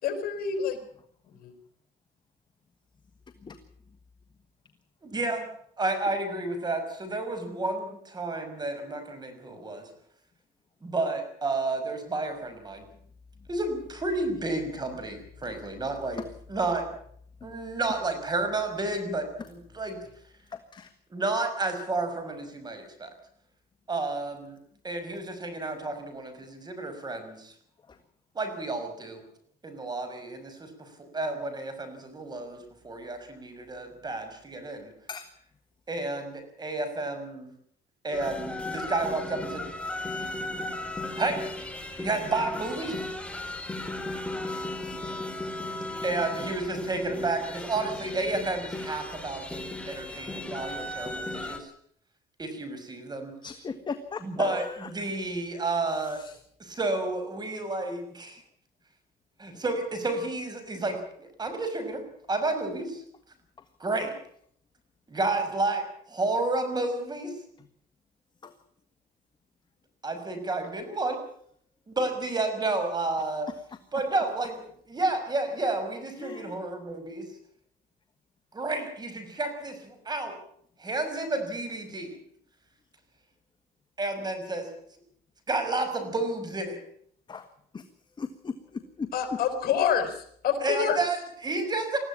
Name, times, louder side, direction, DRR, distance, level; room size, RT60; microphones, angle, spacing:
voice 1, 0.0-0.8 1.3-1.5 89.1-91.0, left 7 dB, 65° left, 7 dB, 5.2 m, -27 dB
voice 2, 5.0-5.5 5.8-9.8 10.8-12.9 13.5-16.2 16.5-16.8 17.4-20.0 21.1-23.1 23.9-24.6 24.8-27.5 28.3-29.2 29.6-30.9 31.1-34.9 35.9-37.5 38.0-39.6 41.2-41.4 42.0-43.1 46.0-51.7 52.4-53.3 54.2-56.2 56.6-58.4 59.4-62.0 62.3-63.0 63.8-64.1 65.1-65.8 66.1-67.3 70.0-71.2 71.9-73.5 73.9-74.6 74.9-77.3 78.5-80.3 80.8-82.2 84.0-84.7 85.5-86.8 90.6-92.0, right 2 dB, 25° right, 7 dB, 6.0 m, -31 dB
voice 3, 20.5-20.9 27.9-28.0 35.1-35.3 53.4-54.9 55.9-56.4 68.4-68.5 76.2-76.6 87.3-87.5 87.7-87.9 88.2-89.1, left 5 dB, 25° left, 8 dB, 1.6 m, -38 dB
sound 1, 38.1-51.6, left 2 dB, 5° left, 3.4 m, -36 dB
21.0 x 15.0 x 8.7 m, 0.64 s
cardioid pair, 110°, 17 cm